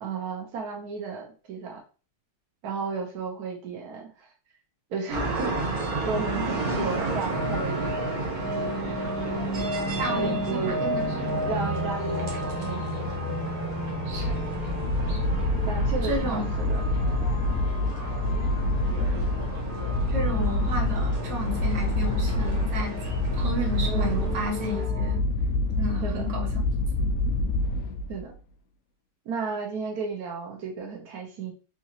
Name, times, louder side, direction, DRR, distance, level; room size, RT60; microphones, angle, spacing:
voice 1, 0.0-1.8 2.6-4.3 4.9-8.2 10.1-10.9 11.4-12.9 15.7-16.8 23.8-24.3 26.0-26.3 28.1-28.3 29.2-31.5, right 5 dB, 65° right, 0 dB, 1.3 m, -33 dB
sound 1, 5.1-24.9, right 2 dB, 45° right, 0.6 m, -33 dB
sound 2, 7.3-25.2, left 1 dB, 15° left, 0.5 m, -35 dB
voice 2, 10.0-11.4 14.1-14.3 16.0-16.5 20.1-23.0 23.3-25.2 25.8-26.5 27.0-27.2, equal, 80° right, 0 dB, 1.6 m, -32 dB
sound 3, 14.1-28.3, left 2 dB, 80° left, 0.7 m, -27 dB
3.7 x 2.9 x 2.8 m, 0.36 s
omnidirectional pair, 1.9 m